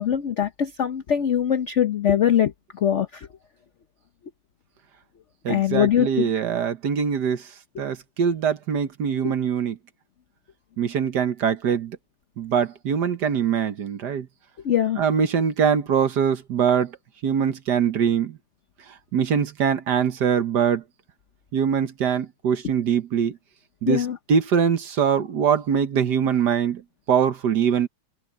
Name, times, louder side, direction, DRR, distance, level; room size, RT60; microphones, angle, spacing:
voice 1, 0.0-3.3 5.5-6.3 9.2-9.3 14.6-15.0 23.9-24.2, left 9 dB, 85° left, 0.6 m, -22 dB
voice 2, 5.4-7.4 7.8-9.8 10.8-12.0 12.4-14.3 15.0-16.9 17.2-18.4 19.1-20.8 21.5-23.4 23.8-26.8 27.1-27.9, right 7 dB, 55° right, 1.6 m, -23 dB
omnidirectional pair, 2.4 m